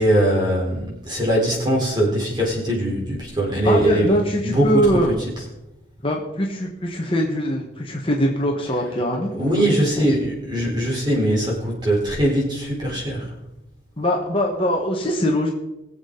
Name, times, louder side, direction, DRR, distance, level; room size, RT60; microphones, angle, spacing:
voice 1, 0.0-4.1 4.4-5.0 9.4-13.3, right 1 dB, 25° right, -3 dB, 4.2 m, -21 dB
voice 2, 3.6-5.2 6.0-10.1 14.0-15.5, equal, 30° left, -1 dB, 1.5 m, -22 dB
22.5 x 7.6 x 4.0 m, 0.95 s
head